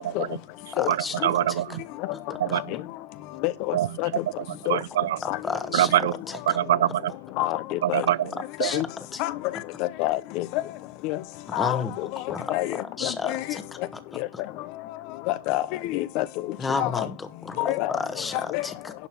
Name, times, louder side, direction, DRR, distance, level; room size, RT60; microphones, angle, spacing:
voice 1, 0.0-0.4 0.9-1.8 2.4-2.8 3.7-4.2 4.6-5.2 5.7-6.2 6.5-7.1 7.8-8.3 8.6-8.8, right 12 dB, 85° right, 0.5 m, -24 dB
voice 2, 0.7-1.3 2.1-2.6 5.2-5.9 6.3-6.4 8.6-8.8 9.1-9.2 11.5-11.9 12.3-13.6 13.9-14.0 14.3-14.4 16.6-18.9, left 4 dB, 10° left, 1.2 m, -32 dB
voice 3, 3.4-4.1 4.7-4.8 5.3-5.4 7.4-8.0 8.6-8.8 9.2-9.3 9.8-10.6 11.0-11.2 11.5-12.1 12.5-12.8 13.0-13.4 14.2-14.3 15.3-16.2 16.8-17.1 17.6-17.9 18.3-18.7, left 17 dB, 40° left, 0.7 m, -27 dB
11.0 x 5.3 x 6.1 m
supercardioid pair, 160°, 0 cm